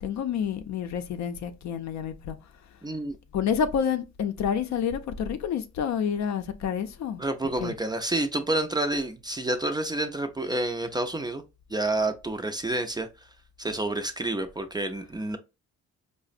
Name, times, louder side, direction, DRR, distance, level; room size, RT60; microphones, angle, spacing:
voice 1, 0.0-2.4 3.3-7.2 7.6-7.7, left 7 dB, 65° left, 0.5 m, -29 dB
voice 2, 2.8-3.1 7.2-11.4 11.7-13.1 13.6-15.4, right 2 dB, 15° right, 0.4 m, -29 dB
4.7 x 2.0 x 2.4 m
cardioid pair, 90°, 30 cm